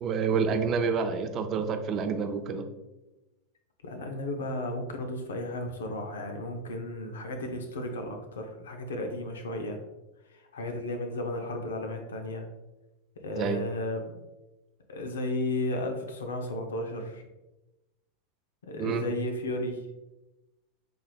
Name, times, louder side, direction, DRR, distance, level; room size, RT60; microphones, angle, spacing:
voice 1, 0.0-2.7 13.4-13.6 18.8-19.1, right 5 dB, 40° right, 7 dB, 0.5 m, -28 dB
voice 2, 3.8-9.8 10.3-12.5 13.2-14.2 14.9-17.2 18.6-19.9, left 1 dB, 80° left, 4 dB, 0.6 m, -34 dB
4.8 x 3.2 x 2.2 m, 1.0 s
hypercardioid pair, 95°, 0 cm